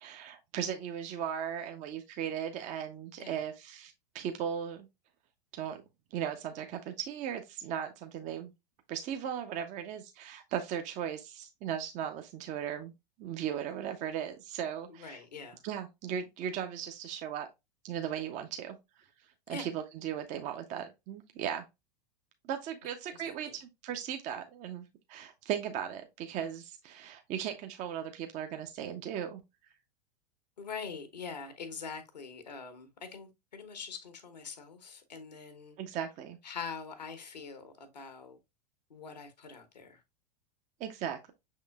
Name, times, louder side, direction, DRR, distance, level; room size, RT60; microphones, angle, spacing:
voice 1, 0.0-4.9 5.5-5.8 6.1-8.5 8.9-12.9 13.2-15.2 15.6-17.5 17.8-18.8 19.5-21.7 22.5-29.4 35.8-36.4 40.8-41.3, right 9 dB, 35° right, 0.6 m, -37 dB
voice 2, 14.9-15.6 19.5-19.7 23.1-23.6 30.6-35.8 36.4-38.4 38.9-40.0, left 5 dB, 80° left, 1.1 m, -44 dB
6.1 x 3.7 x 2.2 m
figure-of-eight pair, 85°, 21 cm